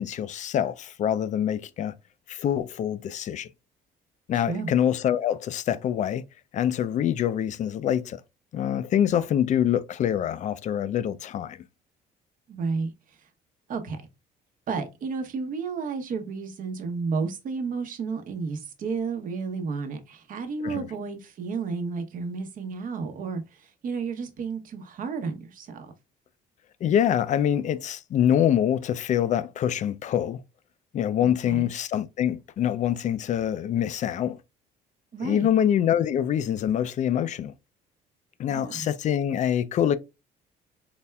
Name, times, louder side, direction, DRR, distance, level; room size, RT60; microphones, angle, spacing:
voice 1, 0.0-1.9 2.3-3.5 4.3-6.2 6.5-8.2 8.5-11.6 20.6-20.9 26.8-30.4 30.9-34.4 35.2-37.5 38.4-40.0, left 10 dB, 45° left, 0.4 m, -25 dB
voice 2, 4.3-4.7 12.5-12.9 13.7-14.0 14.7-25.9 31.2-31.7 35.1-35.5 38.5-38.8, right 5 dB, 55° right, 0.9 m, -32 dB
4.1 x 3.3 x 2.2 m
cardioid pair, 110°, 17 cm